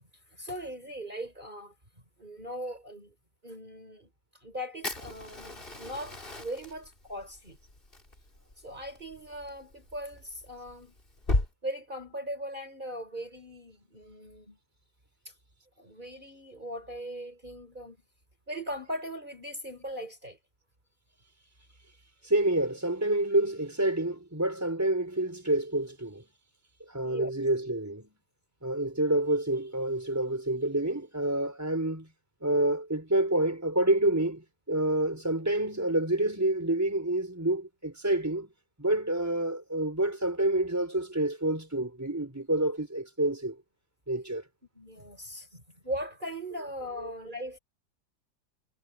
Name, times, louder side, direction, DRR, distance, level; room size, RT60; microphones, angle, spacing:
voice 1, 0.4-1.7 2.2-3.1 3.4-4.1 4.4-7.6 8.6-10.9 11.6-14.6 15.8-18.0 18.5-20.4 27.0-27.3 44.7-47.6, equal, 25° right, 4.7 m, -39 dB
Fire, 4.8-11.5, left 2 dB, 30° left, 3.8 m, -36 dB
voice 2, 22.2-26.2 26.9-28.1 28.6-32.1 32.4-38.5 38.8-43.6 44.1-44.4 47.0-47.1, right 1 dB, 10° right, 5.0 m, -28 dB
omnidirectional pair, 1.9 m